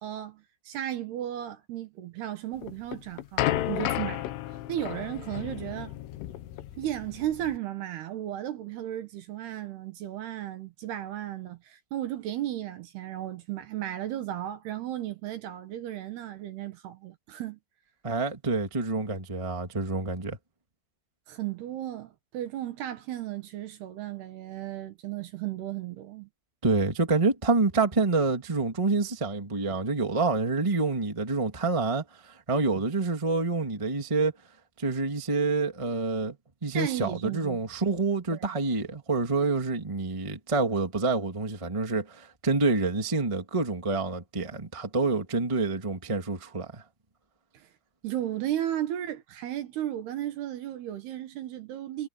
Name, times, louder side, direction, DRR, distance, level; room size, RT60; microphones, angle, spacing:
voice 1, 0.0-6.0 6.8-17.6 21.3-26.3 36.7-37.6 38.3-38.5 47.5-47.7 48.0-52.1, right 12 dB, 65° right, 3.0 m, -35 dB
sound 1, 2.6-7.6, left 14 dB, 75° left, 3.6 m, -33 dB
voice 2, 18.0-20.4 26.6-32.0 32.5-34.3 34.8-36.3 36.6-46.8, right 3 dB, 30° right, 0.5 m, -27 dB
omnidirectional pair, 5.8 m